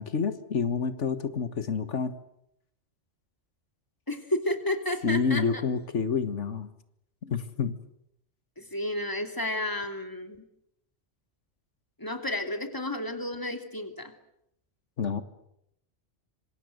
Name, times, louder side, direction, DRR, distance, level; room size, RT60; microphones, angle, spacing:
voice 1, 0.0-2.1 5.0-6.7 7.2-7.8 15.0-15.2, left 6 dB, 90° left, 11 dB, 1.8 m, -28 dB
voice 2, 4.1-5.6 8.6-10.4 12.0-14.1, left 1 dB, 15° left, 6 dB, 3.1 m, -31 dB
26.5 x 26.0 x 8.0 m, 0.78 s
omnidirectional pair, 1.2 m